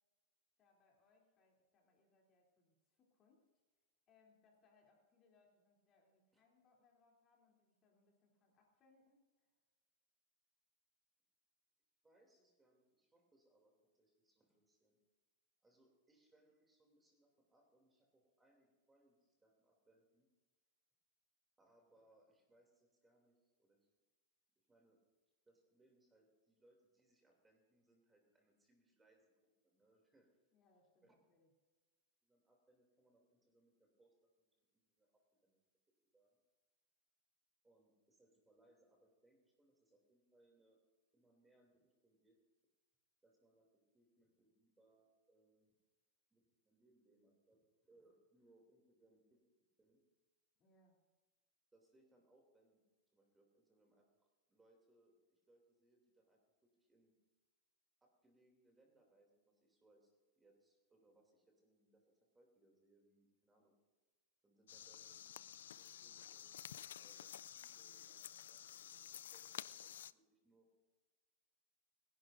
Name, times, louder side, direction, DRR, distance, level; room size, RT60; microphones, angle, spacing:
voice 1, 0.6-3.5 4.1-9.5 30.5-31.5 50.6-51.0, left 3 dB, 35° left, -1 dB, 3.1 m, -75 dB
voice 2, 12.0-15.0 15.6-20.3 21.6-23.9 24.5-25.0 25.4-29.3 29.6-30.3 31.0-31.2 32.2-35.6 36.0-36.4 37.6-40.8 41.1-42.4 43.2-43.7 43.9-45.7 46.3-49.4 49.8-50.0 51.7-52.8 53.1-54.1 54.5-57.1 58.0-62.0 62.3-63.7 64.4-70.7, right 2 dB, 10° right, 1 dB, 2.8 m, -74 dB
sound 1, 64.7-70.1, left 10 dB, 90° left, 0.3 m, -52 dB
30.0 x 11.0 x 2.6 m, 1.3 s
supercardioid pair, 135°, 0 cm